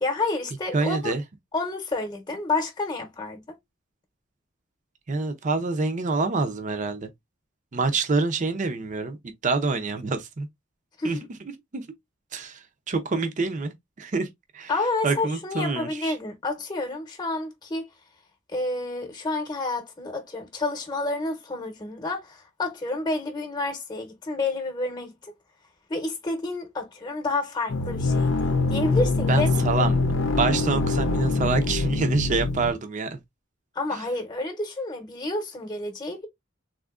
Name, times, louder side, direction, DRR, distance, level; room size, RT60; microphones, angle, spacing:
voice 1, 0.0-1.1 1.5-3.6 11.0-11.3 14.7-17.9 18.5-25.3 25.9-28.3 28.7-29.9 33.7-36.3, left 2 dB, 20° left, 0.9 m, -29 dB
voice 2, 0.7-1.2 5.1-7.1 7.7-9.2 9.4-10.5 11.0-11.2 11.7-11.9 12.3-12.6 12.9-13.7 14.0-14.3 14.5-14.7 15.0-16.1 29.3-30.0 30.4-33.2 33.9-34.0, right 3 dB, 40° right, 0.5 m, -26 dB
sound 1, 27.7-32.7, left 3 dB, 75° left, 0.7 m, -24 dB
3.6 x 2.7 x 2.4 m
head